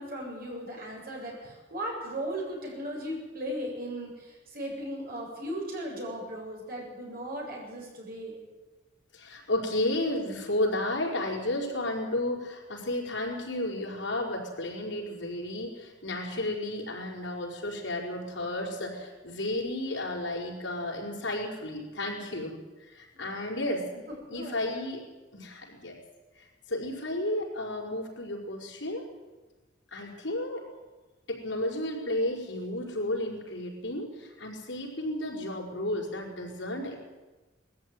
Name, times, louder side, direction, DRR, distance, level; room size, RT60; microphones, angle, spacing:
voice 1, 0.0-8.4 23.1-23.4 24.3-24.6, equal, 50° right, -1 dB, 7.7 m, -37 dB
voice 2, 9.1-22.5 22.8-23.9 24.3-25.1 25.3-26.0 26.4-29.1 29.9-30.6 31.3-37.0, left 1 dB, 70° left, -1 dB, 5.4 m, -32 dB
21.0 x 14.0 x 9.6 m, 1.2 s
head